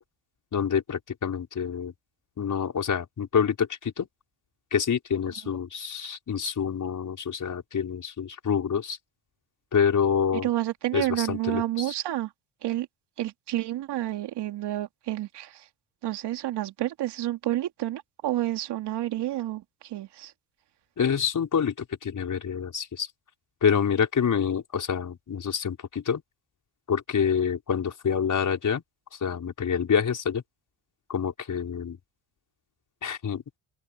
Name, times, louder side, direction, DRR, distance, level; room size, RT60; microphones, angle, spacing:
voice 1, 0.5-1.9 2.4-4.1 4.7-9.0 9.7-10.5 10.9-11.6 21.0-21.7 22.0-23.1 23.6-26.2 26.9-28.8 29.2-30.4 31.1-32.0 33.0-33.4, left 7 dB, 45° left, 5.9 m, -27 dB
voice 2, 10.4-12.3 12.6-12.9 13.2-15.6 16.0-20.3, right 14 dB, 65° right, 3.1 m, -30 dB
open air
supercardioid pair, 70°, 44 cm